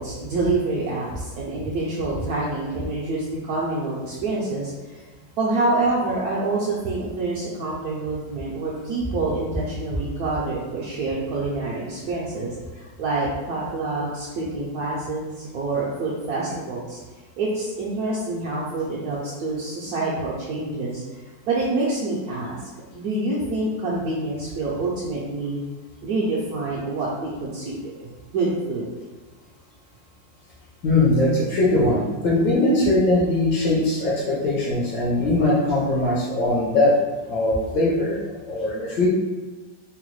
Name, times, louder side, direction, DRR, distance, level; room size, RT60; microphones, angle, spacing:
voice 1, 0.0-4.7 5.4-17.0 17.4-22.6 22.9-25.6 26.0-28.0 28.3-28.8, right 2 dB, 70° right, -6 dB, 1.0 m, -27 dB
voice 2, 30.8-36.9 37.3-39.1, left 2 dB, 75° left, -5 dB, 1.4 m, -21 dB
3.8 x 2.1 x 3.0 m, 1.3 s
omnidirectional pair, 1.9 m